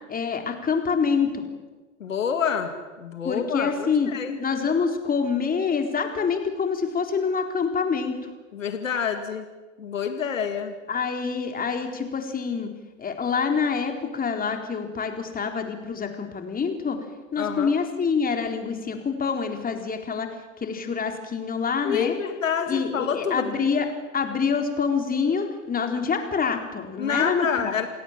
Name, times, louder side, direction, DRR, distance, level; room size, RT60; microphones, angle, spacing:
voice 1, 0.1-1.4 3.2-4.1 4.4-8.3 10.9-12.7 13.0-17.0 17.3-20.3 20.6-22.1 22.7-23.9 24.1-27.7, left 5 dB, 20° left, 5 dB, 3.9 m, -26 dB
voice 2, 2.0-2.7 3.0-4.4 8.5-9.5 9.8-10.7 17.4-17.7 21.8-23.7 27.0-27.9, left 7 dB, 85° left, 7 dB, 2.3 m, -27 dB
29.0 x 17.5 x 7.4 m, 1.2 s
hypercardioid pair, 95°, 38 cm